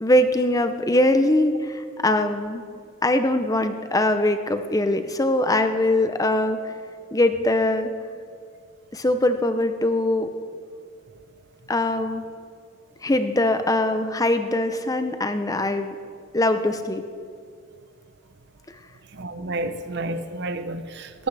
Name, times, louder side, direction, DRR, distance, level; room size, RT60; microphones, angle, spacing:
voice 1, 0.0-2.6 3.0-6.6 7.1-7.9 8.9-10.3 11.7-12.2 13.0-16.0 16.3-17.0, left 1 dB, 15° left, 0.6 m, -22 dB
voice 2, 19.1-21.3, right 2 dB, 60° right, 0.7 m, -30 dB
19.0 x 11.5 x 3.4 m
head